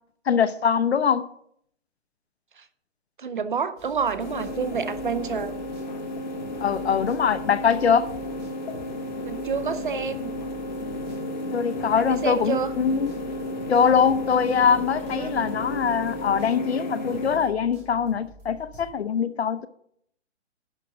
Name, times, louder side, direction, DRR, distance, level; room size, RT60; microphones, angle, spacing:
voice 1, 0.3-1.2 6.6-8.1 11.5-13.1 13.7-19.7, left 7 dB, 60° left, 0.8 m, -23 dB
voice 2, 3.2-5.6 9.2-10.4 11.9-12.7 15.0-15.4, right 6 dB, 45° right, 0.6 m, -29 dB
sound 1, 3.7-6.1 6.4-18.9, left 1 dB, 20° right, 2.4 m, -49 dB
sound 2, 4.2-17.4, left 1 dB, 40° left, 1.7 m, -33 dB
11.0 x 5.0 x 6.4 m
hypercardioid pair, 175°, 36 cm